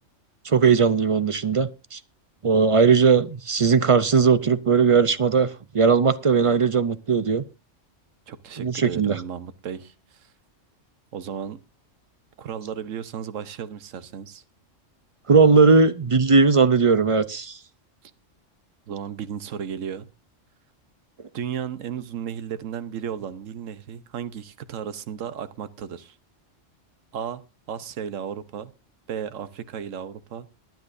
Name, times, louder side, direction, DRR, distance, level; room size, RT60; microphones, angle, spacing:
voice 1, 0.4-2.0 2.4-5.5 5.7-7.4 8.6-9.2 15.3-17.6, right 5 dB, 40° right, 0.4 m, -18 dB
voice 2, 8.3-10.3 11.1-11.6 12.4-14.4 18.9-20.1 21.3-26.1 27.1-27.4 27.7-28.7 29.1-30.5, right 8 dB, 85° right, 1.2 m, -34 dB
22.0 x 9.3 x 2.6 m
omnidirectional pair, 1.3 m